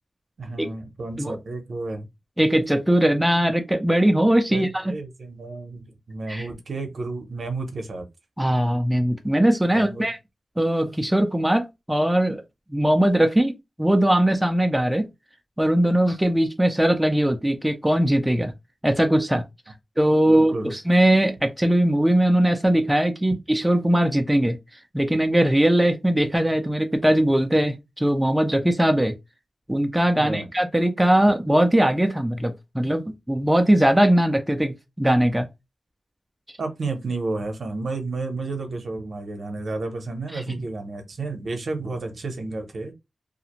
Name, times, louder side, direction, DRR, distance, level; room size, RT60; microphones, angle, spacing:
voice 1, 0.4-2.1 4.5-8.1 9.7-10.1 20.3-20.7 30.2-30.5 36.6-42.9, right 3 dB, 65° right, 0.6 m, -31 dB
voice 2, 2.4-4.8 6.3-6.4 8.4-10.2 10.6-12.4 12.7-13.5 13.8-15.1 15.6-18.5 18.8-19.4 20.0-24.6 24.9-29.1 29.7-35.5 40.3-40.4, right 1 dB, 5° right, 0.3 m, -20 dB
2.4 x 2.0 x 2.9 m
wide cardioid pair, 130°, 0 cm